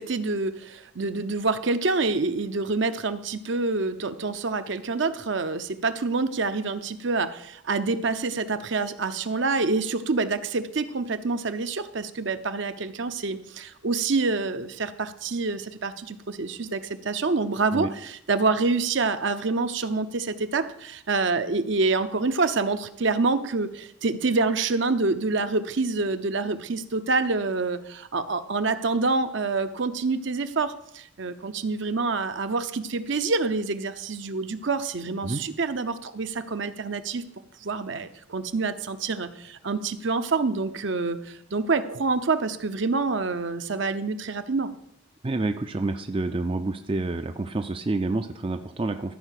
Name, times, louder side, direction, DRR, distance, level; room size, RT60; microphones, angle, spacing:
voice 1, 0.0-37.3 37.6-44.7, right 3 dB, 60° right, 10 dB, 0.7 m, -27 dB
voice 2, 45.2-49.1, right 2 dB, 25° right, 8 dB, 0.4 m, -28 dB
13.5 x 4.9 x 6.5 m, 0.74 s
head